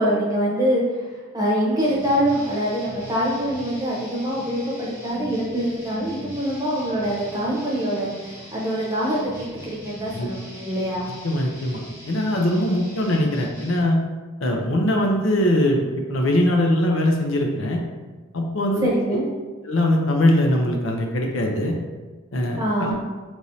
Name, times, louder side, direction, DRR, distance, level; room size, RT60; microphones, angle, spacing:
voice 1, 0.0-11.1 18.8-19.2 22.6-22.9, equal, 15° right, -5 dB, 0.9 m, -24 dB
sound 1, 1.8-13.8, equal, 15° left, 1.5 m, -41 dB
voice 2, 11.2-14.0 14.4-17.8 18.3-18.9 19.7-21.7 22.3-22.9, left 1 dB, 65° left, 1 dB, 0.6 m, -21 dB
5.3 x 3.1 x 2.7 m, 1.3 s
head